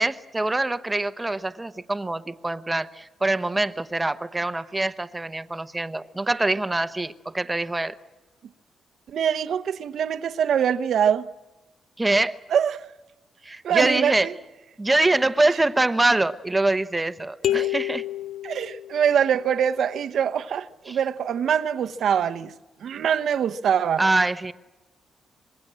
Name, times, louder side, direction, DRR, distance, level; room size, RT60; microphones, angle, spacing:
voice 1, 0.0-7.9 12.0-12.4 13.4-14.3 14.8-18.0 20.9-21.0 24.0-24.5, right 2 dB, 10° right, 0.9 m, -24 dB
voice 2, 9.1-11.3 12.5-12.9 13.6-14.3 17.5-17.7 18.4-22.5 22.8-24.0, right 8 dB, 65° right, 0.9 m, -24 dB
sound 1, 17.4-19.3, left 13 dB, 70° left, 0.7 m, -28 dB
25.5 x 22.0 x 7.6 m
wide cardioid pair, 155°, 0 cm